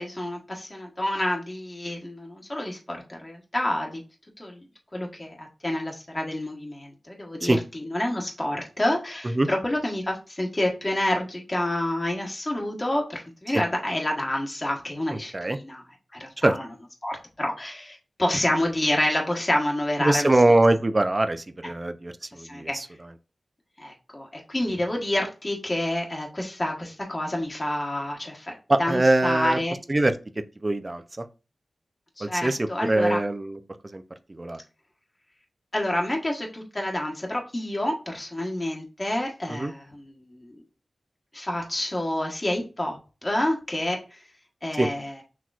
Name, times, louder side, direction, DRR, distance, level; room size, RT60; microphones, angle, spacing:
voice 1, 0.0-4.0 4.4-4.6 4.9-15.8 16.2-16.6 17.0-20.3 22.4-22.8 23.8-29.8 32.2-33.2 35.7-40.5 41.3-44.2 44.6-45.2, left 1 dB, 30° left, 1.1 m, -28 dB
voice 2, 15.1-15.6 16.4-16.5 20.0-22.9 28.7-29.6 29.9-30.1 30.6-31.3 32.2-34.0 34.4-34.6 39.5-39.7 44.8-44.9, right 2 dB, 35° right, 0.5 m, -23 dB
6.0 x 3.0 x 2.4 m
cardioid pair, 50°, 0 cm